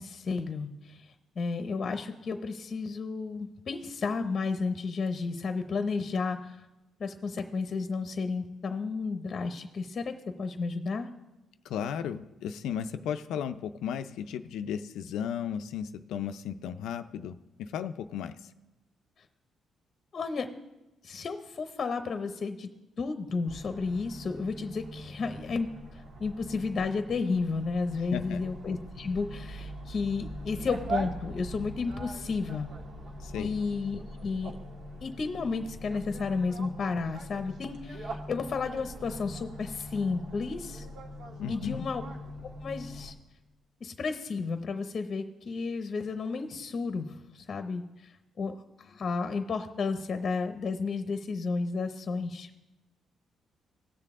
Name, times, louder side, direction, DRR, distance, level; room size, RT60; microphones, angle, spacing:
voice 1, 0.0-6.6 7.0-11.1 20.1-20.5 21.0-22.7 23.0-32.7 33.4-34.5 35.0-40.9 41.5-42.0 42.6-43.1 43.8-48.1 48.4-52.5, left 4 dB, 45° left, 8 dB, 0.7 m, -32 dB
voice 2, 11.6-18.5 28.1-28.4 33.2-33.6 41.4-41.9, left 8 dB, 85° left, 9 dB, 0.4 m, -35 dB
sound 1, 23.5-43.1, right 1 dB, 60° right, 1.6 m, -42 dB
17.5 x 6.8 x 3.6 m, 1.0 s
cardioid pair, 90°, 0 cm